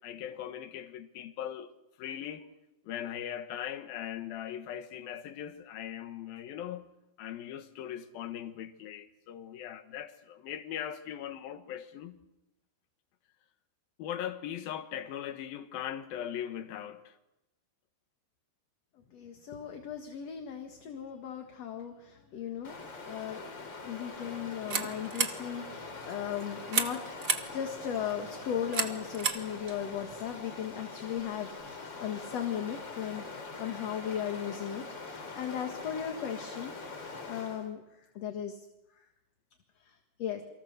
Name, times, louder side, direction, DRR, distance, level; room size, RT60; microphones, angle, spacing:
voice 1, 0.0-1.7 2.0-2.5 2.8-6.9 7.2-12.2 14.0-17.2, left 10 dB, 75° left, 3.2 m, -39 dB
voice 2, 19.1-22.8 23.1-23.4 23.8-36.7 37.3-37.8 38.2-38.6 39.8-40.4, left 9 dB, 50° left, 2.4 m, -37 dB
Stream, 22.6-37.7, left 3 dB, 30° left, 3.4 m, -44 dB
sound 1, 24.2-30.4, right 5 dB, 85° right, 0.7 m, -36 dB
28.5 x 24.5 x 6.7 m
omnidirectional pair, 4.2 m